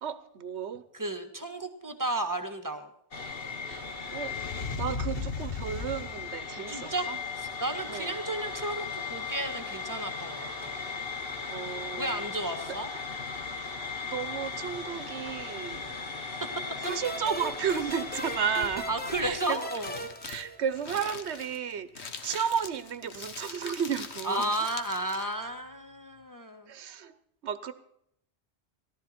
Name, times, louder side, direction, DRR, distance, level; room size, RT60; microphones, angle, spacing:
voice 1, 0.0-0.8 3.6-3.8 4.1-4.4 4.8-7.2 7.9-8.2 11.5-12.2 12.7-12.8 13.6-13.7 14.0-15.8 16.8-18.9 19.2-19.6 20.3-24.5 26.7-27.1 27.4-27.7, right 8 dB, 75° right, 13 dB, 1.2 m, -33 dB
voice 2, 0.9-2.9 6.7-10.8 12.0-12.9 16.3-16.8 18.9-20.1 24.2-26.7, right 1 dB, 15° right, 5 dB, 1.6 m, -33 dB
sound 1, 3.1-19.4, left 4 dB, 55° left, 1.6 m, -37 dB
sound 2, 16.8-21.2, equal, 10° left, 0.9 m, -40 dB
Crumpling crinkling, 18.7-25.4, left 5 dB, 70° left, 1.5 m, -43 dB
18.0 x 12.5 x 4.4 m, 0.71 s
omnidirectional pair, 1.1 m